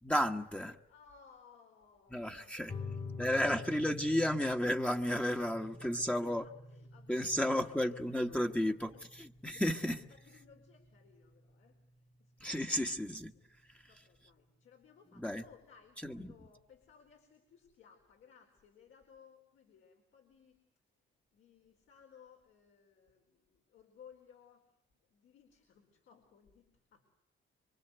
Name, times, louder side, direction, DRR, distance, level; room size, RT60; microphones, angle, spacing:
voice 1, 0.0-0.8 2.1-2.7 3.2-6.4 7.1-10.0 12.4-13.3 13.7-13.8 15.2-15.4 16.0-16.3, equal, 5° left, 1.3 m, -33 dB
voice 2, 0.9-3.6 4.0-4.2 5.2-9.0 9.5-9.6 10.0-20.6 21.3-24.8 25.1-27.0, left 6 dB, 75° left, 4.3 m, -62 dB
sound 1, 2.7-13.7, left 3 dB, 35° left, 2.0 m, -49 dB
26.5 x 24.0 x 8.0 m
cardioid pair, 90°, 20 cm